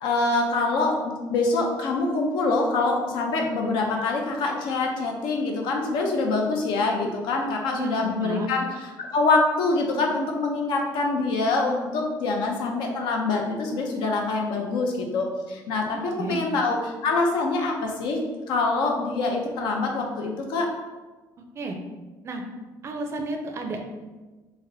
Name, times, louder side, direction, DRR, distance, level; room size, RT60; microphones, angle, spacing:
voice 1, 0.0-18.2 18.5-20.7, left 3 dB, 80° left, 1 dB, 0.6 m, -25 dB
voice 2, 7.7-8.5 15.9-16.4 21.6-21.8 22.2-22.4 22.8-23.8, right 2 dB, 35° right, 3 dB, 0.4 m, -32 dB
4.0 x 2.1 x 2.6 m, 1.2 s
cardioid pair, 145°, 8 cm